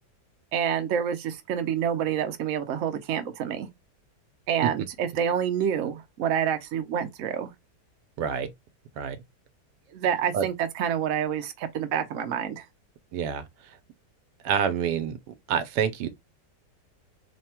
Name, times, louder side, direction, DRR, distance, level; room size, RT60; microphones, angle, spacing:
voice 1, 0.5-3.7 4.5-7.5 9.9-12.6, right 8 dB, 65° right, 0.8 m, -28 dB
voice 2, 8.2-8.5 9.0-9.2 10.3-10.5 13.1-13.4 14.4-15.2 15.5-16.1, right 7 dB, 80° right, 1.2 m, -27 dB
3.3 x 2.2 x 4.3 m
omnidirectional pair, 1.8 m